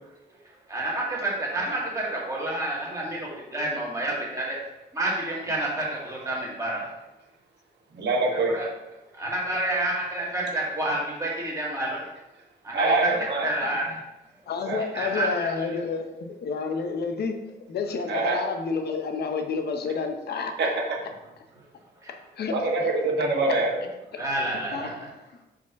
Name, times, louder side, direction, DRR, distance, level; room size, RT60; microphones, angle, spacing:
voice 1, 0.7-4.6 4.9-6.9 8.3-8.7 9.1-12.0 12.6-13.8 14.9-15.5 22.0-22.1 24.2-25.1, right 1 dB, 15° right, -5 dB, 2.0 m, -29 dB
voice 2, 8.0-8.5 12.7-13.5 14.7-14.8 18.1-18.5 20.6-21.0 22.5-23.9, right 2 dB, 75° right, 0 dB, 1.3 m, -24 dB
voice 3, 14.5-17.4 17.7-20.5 22.1-22.9 24.1-24.2 24.7-25.1, left 5 dB, 65° left, 5 dB, 0.8 m, -30 dB
4.9 x 4.3 x 5.8 m, 0.97 s
wide cardioid pair, 150°, 18 cm